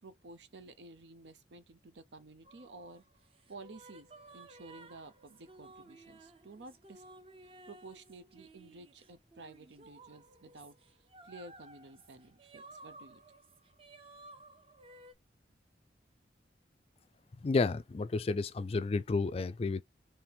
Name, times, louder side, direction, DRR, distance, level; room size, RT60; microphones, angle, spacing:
voice 1, 0.0-3.0 3.5-7.0 7.4-10.8 11.2-13.2, right 2 dB, 80° right, 0.7 m, -52 dB
sound 1, 2.4-15.1, right 2 dB, 30° right, 0.6 m, -56 dB
voice 2, 17.4-19.8, left 3 dB, 35° left, 0.3 m, -31 dB
4.3 x 3.4 x 3.3 m
head